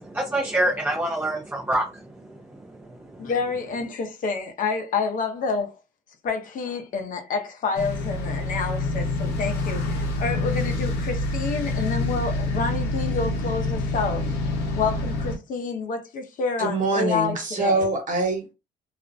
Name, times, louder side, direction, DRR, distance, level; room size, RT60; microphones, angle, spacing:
voice 1, 0.0-3.3, right 1 dB, 10° right, 0.4 m, -27 dB
voice 2, 3.2-5.8 6.2-14.3 14.8-17.9, left 4 dB, 50° left, 0.6 m, -28 dB
sound 1, 7.7-15.3, left 2 dB, 90° left, 0.7 m, -27 dB
voice 3, 16.6-18.5, right 2 dB, 50° right, 1.1 m, -24 dB
2.4 x 2.0 x 2.5 m
cardioid pair, 110°, 17 cm